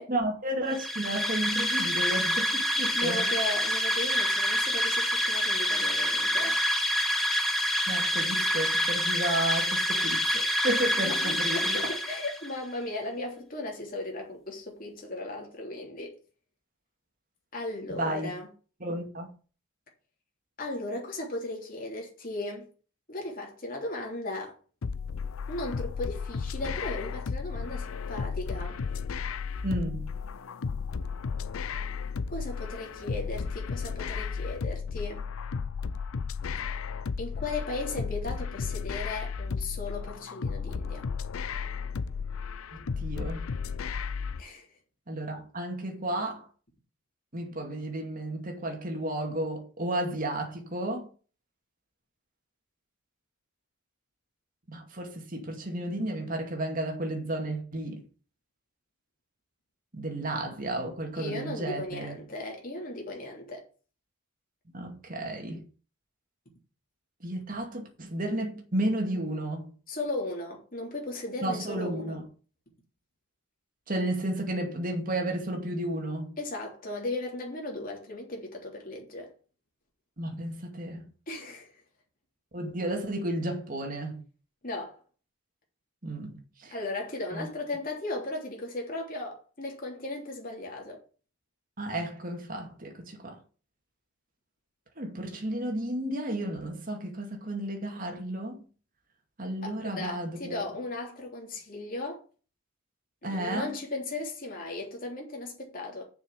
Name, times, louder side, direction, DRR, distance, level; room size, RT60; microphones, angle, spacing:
voice 1, 0.1-3.2 7.9-11.9 18.0-18.4 18.8-19.3 29.6-30.1 43.0-43.5 45.1-46.4 47.3-51.1 54.7-58.0 59.9-62.2 64.7-65.7 67.2-69.8 71.4-72.2 73.9-76.4 80.2-81.1 82.5-84.2 86.0-86.8 87.3-87.5 91.8-93.4 95.0-98.6 99.4-100.6 103.2-103.8, right 1 dB, 40° right, 2.3 m, -32 dB
sound 1, 0.7-12.5, equal, ahead, 1.4 m, -27 dB
voice 2, 2.9-6.6 11.0-16.1 17.5-18.5 20.6-22.7 23.1-24.5 25.5-28.8 32.3-35.3 37.2-41.0 44.4-44.7 61.1-63.6 69.9-72.2 76.4-79.3 81.3-81.7 84.6-85.0 86.7-91.0 99.6-102.2 103.2-106.0, left 2 dB, 40° left, 3.3 m, -36 dB
sound 2, 24.8-44.4, left 5 dB, 80° left, 0.5 m, -34 dB
6.9 x 6.3 x 7.1 m
head